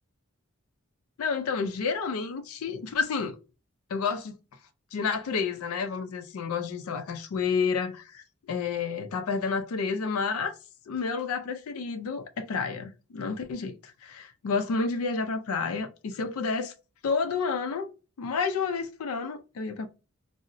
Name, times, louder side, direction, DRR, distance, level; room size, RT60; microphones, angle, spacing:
voice 1, 1.2-3.4 3.9-4.4 4.9-10.6 10.9-16.7 17.0-17.9 18.2-19.9, left 5 dB, 80° left, 0.4 m, -30 dB
3.7 x 2.0 x 2.5 m
head